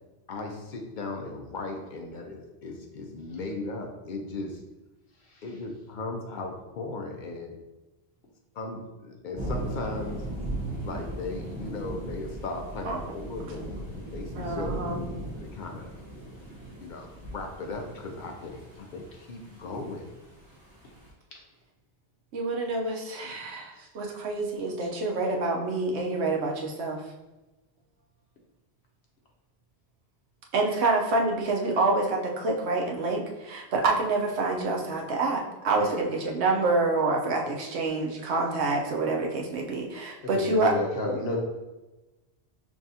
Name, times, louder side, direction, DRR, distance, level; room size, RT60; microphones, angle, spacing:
voice 1, 0.3-4.6 5.4-7.6 8.5-10.2 10.8-16.0 16.8-20.1, left 3 dB, 60° left, 3 dB, 0.6 m, -37 dB
sound 1, 9.4-21.1, right 1 dB, 70° right, 1.5 m, -38 dB
voice 2, 14.4-15.0 22.3-27.0 30.5-40.7, right 3 dB, 85° right, 0 dB, 1.0 m, -27 dB
voice 3, 40.2-41.4, left 1 dB, 75° left, -1 dB, 1.1 m, -30 dB
6.0 x 2.3 x 2.7 m, 1.1 s
omnidirectional pair, 1.1 m